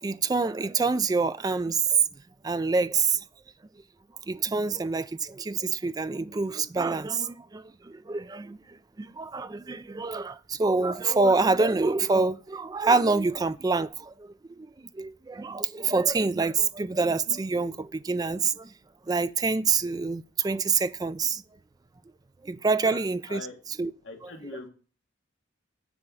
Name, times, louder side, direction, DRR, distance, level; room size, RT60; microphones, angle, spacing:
voice 1, 0.0-2.0 2.4-3.2 4.3-18.7 19.1-21.4 22.4-23.4 23.8-23.9, right 4 dB, 20° right, 0.3 m, -26 dB
voice 2, 22.8-23.6 24.0-24.7, left 2 dB, 65° left, 1.4 m, -41 dB
9.7 x 3.6 x 6.8 m
head